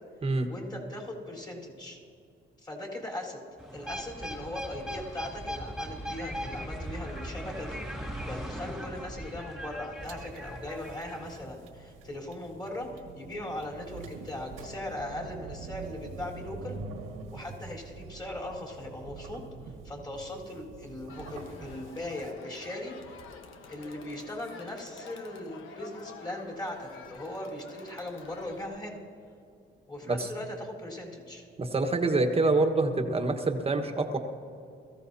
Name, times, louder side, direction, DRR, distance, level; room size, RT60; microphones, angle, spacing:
voice 1, 0.5-2.0 2.6-3.4 3.7-12.9 13.2-16.8 17.3-19.4 19.8-23.2 23.7-29.0 29.9-31.5, left 1 dB, 20° left, -4 dB, 4.0 m, -39 dB
sound 1, 3.6-11.4, equal, ahead, 2.3 m, -39 dB
sound 2, 10.0-22.3, right 4 dB, 90° right, 1.7 m, -45 dB
Crowd, 21.1-28.7, left 5 dB, 85° left, 1.2 m, -49 dB
voice 2, 31.6-34.2, right 3 dB, 30° right, 6 dB, 1.4 m, -26 dB
22.0 x 15.0 x 2.8 m, 2.4 s
cardioid pair, 90°, 20 cm